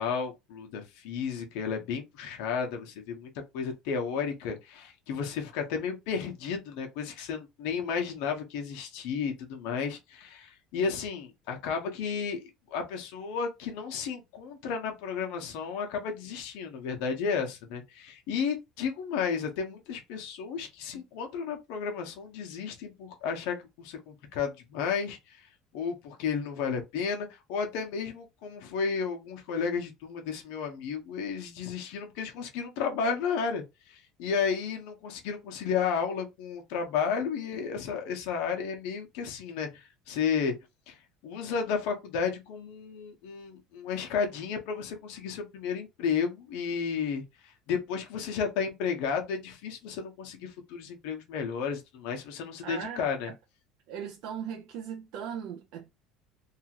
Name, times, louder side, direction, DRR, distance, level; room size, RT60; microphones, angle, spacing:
voice 1, 0.0-25.5 25.7-40.5 40.9-41.0 41.2-53.3, left 6 dB, 70° left, 0.9 m, -33 dB
voice 2, 52.6-53.3 53.9-55.9, right 8 dB, 65° right, 0.5 m, -38 dB
2.8 x 2.4 x 2.8 m
cardioid pair, 155°, 0 cm